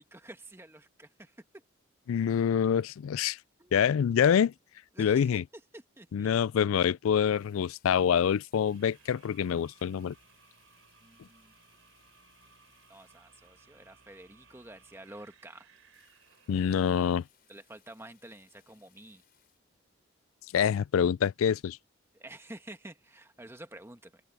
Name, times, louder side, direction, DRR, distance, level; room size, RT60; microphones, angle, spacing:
voice 1, 0.0-1.4 3.6-4.0 4.9-6.3 11.0-11.5 12.9-15.7 16.9-17.2 17.5-19.2 22.1-24.2, right 1 dB, 10° right, 1.3 m, -49 dB
voice 2, 2.1-3.4 3.7-4.5 5.0-5.4 6.1-10.1 16.5-17.2 20.5-21.8, left 8 dB, 80° left, 0.3 m, -26 dB
sound 1, 7.2-14.0 14.6-14.7 15.0-15.1 15.3-15.4 15.5-19.6, left 10 dB, 45° left, 5.3 m, -69 dB
sound 2, 8.5-17.0, right 5 dB, 85° right, 3.4 m, -62 dB
open air
head